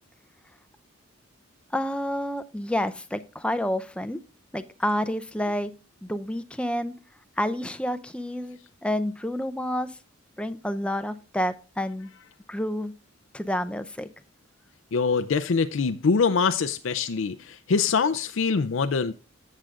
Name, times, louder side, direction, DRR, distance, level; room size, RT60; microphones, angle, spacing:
voice 1, 1.7-4.2 4.5-5.7 6.0-6.9 7.4-9.9 10.4-12.1 12.5-12.9 13.3-14.1, equal, 5° left, 0.5 m, -29 dB
voice 2, 14.9-19.1, left 5 dB, 70° left, 0.5 m, -24 dB
16.0 x 6.6 x 2.4 m
head